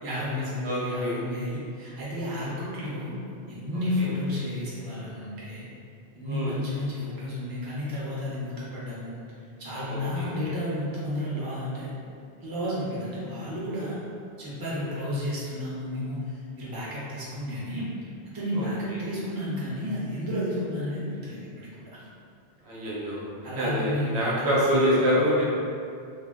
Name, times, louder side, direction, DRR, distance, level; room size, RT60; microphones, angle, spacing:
voice 1, 0.0-3.2 3.5-5.6 6.1-9.2 9.6-12.0 12.4-14.0 14.4-16.2 16.6-17.9 18.3-21.9 23.4-25.0, left 1 dB, 25° right, -8 dB, 0.6 m, -32 dB
voice 2, 0.6-1.2 4.0-4.1 6.2-6.5 9.9-10.3 18.5-19.1 22.7-23.3 23.5-25.5, equal, 85° right, -6 dB, 1.0 m, -26 dB
2.2 x 2.1 x 3.5 m, 2.4 s
omnidirectional pair, 1.1 m